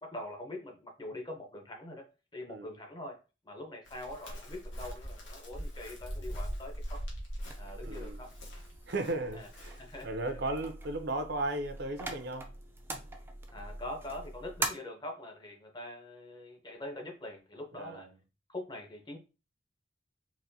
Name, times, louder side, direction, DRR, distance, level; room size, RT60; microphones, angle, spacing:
voice 1, 0.0-2.1 2.3-3.2 3.4-7.0 7.6-8.3 9.3-9.5 9.8-10.2 13.5-18.1 18.5-19.2, left 1 dB, 25° left, 0.8 m, -43 dB
Chirp tweet, 3.8-10.0, equal, 85° left, 1.2 m, -42 dB
sound 1, 7.4-14.7, right 2 dB, 10° right, 0.4 m, -42 dB
voice 2, 7.8-8.2 8.9-12.5 17.7-18.1, right 2 dB, 60° right, 0.6 m, -36 dB
4.0 x 2.6 x 2.7 m
head